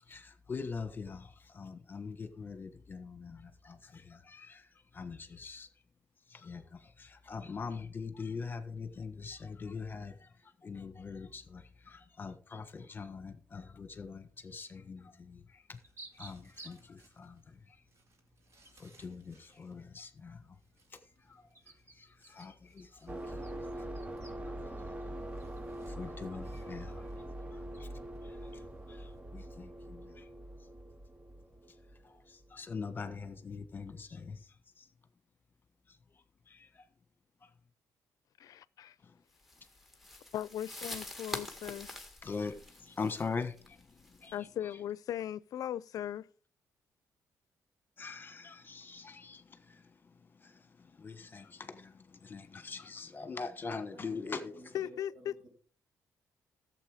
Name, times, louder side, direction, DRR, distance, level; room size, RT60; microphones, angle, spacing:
voice 1, 0.1-5.7 6.3-15.8 16.1-17.8 18.8-20.6 21.2-21.5 21.9-23.4 23.8-23.9 24.4-24.5 25.9-27.1 27.5-27.9 28.2-28.6 28.9-30.3 32.0-34.9 35.9-36.0 36.5-36.8 37.4-37.5 39.0-39.2 42.2-44.3 48.0-54.5, left 5 dB, 30° left, 1.4 m, -43 dB
Chirping Rapid, 15.7-29.2, right 2 dB, 45° right, 2.3 m, -60 dB
sound 1, 23.1-32.6, right 1 dB, 20° right, 0.7 m, -43 dB
voice 2, 38.4-39.0 40.3-41.9 44.3-46.3 54.7-55.3, left 11 dB, 70° left, 0.5 m, -38 dB
sound 2, 39.4-44.3, left 1 dB, ahead, 1.8 m, -45 dB
voice 3, 53.9-55.5, right 1 dB, 70° right, 6.3 m, -53 dB
13.0 x 7.7 x 5.0 m
cardioid pair, 110°, 6 cm